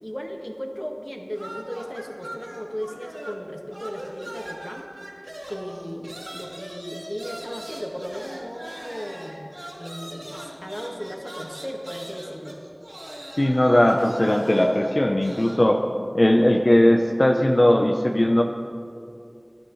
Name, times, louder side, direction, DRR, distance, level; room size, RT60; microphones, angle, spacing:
voice 1, 0.0-4.9 5.5-9.5 9.8-12.6, equal, 15° left, 1 dB, 1.6 m, -36 dB
sound 1, 1.3-3.5 3.7-15.7, right 1 dB, 45° right, 3.9 m, -40 dB
voice 2, 13.4-15.8 16.1-18.4, left 1 dB, 50° left, 2 dB, 0.8 m, -18 dB
20.5 x 11.5 x 3.2 m, 2.4 s
wide cardioid pair, 40°, 0 cm